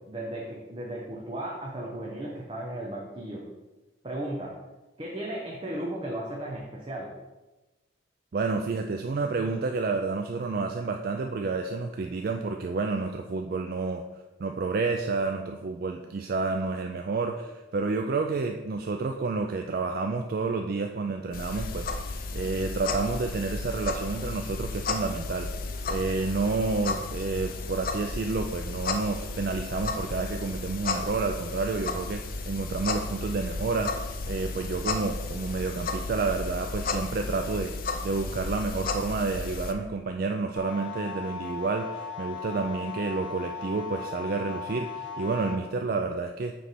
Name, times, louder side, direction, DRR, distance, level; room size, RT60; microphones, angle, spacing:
voice 1, 0.1-3.4 4.0-4.5 5.0-7.1, right 1 dB, 25° right, -3 dB, 0.7 m, -35 dB
voice 2, 8.3-14.0 14.4-46.5, right 4 dB, 50° right, 5 dB, 0.3 m, -30 dB
sound 1, 21.3-39.7, left 3 dB, 45° left, 0.5 m, -33 dB
sound 2, 40.6-45.6, left 6 dB, 75° left, 1.3 m, -37 dB
9.0 x 3.3 x 4.2 m, 1.1 s
head